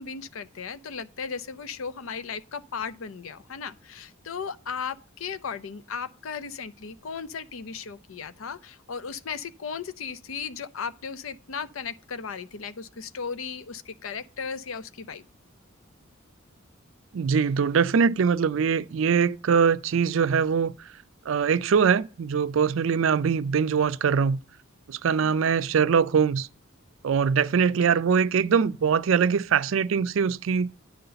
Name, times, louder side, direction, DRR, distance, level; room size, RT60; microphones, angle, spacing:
voice 1, 0.0-15.2 25.2-25.4, left 6 dB, 80° left, 0.6 m, -36 dB
voice 2, 17.1-20.7 21.3-24.4 24.9-26.5 27.0-30.7, right 6 dB, 70° right, 0.4 m, -22 dB
9.7 x 4.0 x 6.6 m
head